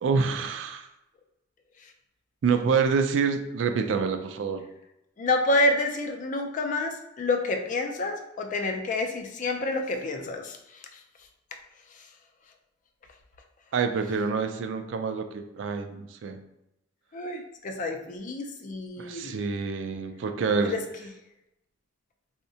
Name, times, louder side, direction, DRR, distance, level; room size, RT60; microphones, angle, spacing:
voice 1, 0.0-0.9 2.4-4.6 13.7-16.4 19.0-20.7, right 5 dB, 75° right, 7 dB, 0.3 m, -27 dB
voice 2, 5.2-10.6 17.1-19.4 20.6-20.8, left 2 dB, 45° left, 4 dB, 0.4 m, -28 dB
3.6 x 2.1 x 2.7 m, 0.90 s
head